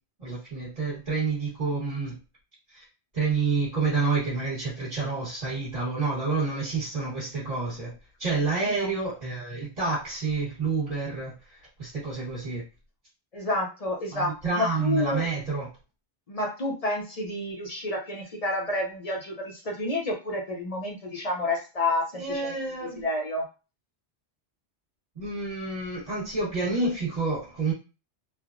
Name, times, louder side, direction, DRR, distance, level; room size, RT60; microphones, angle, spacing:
voice 1, 0.2-2.1 2.7-2.8 3.1-7.9 8.2-12.6 14.1-15.7 22.2-23.1 25.1-27.7, right 4 dB, 40° right, -7 dB, 1.2 m, -29 dB
voice 2, 13.3-15.3 16.3-22.4 22.8-23.5, left 2 dB, 45° left, 0 dB, 0.5 m, -29 dB
3.2 x 2.0 x 2.4 m, 0.31 s
omnidirectional pair, 1.1 m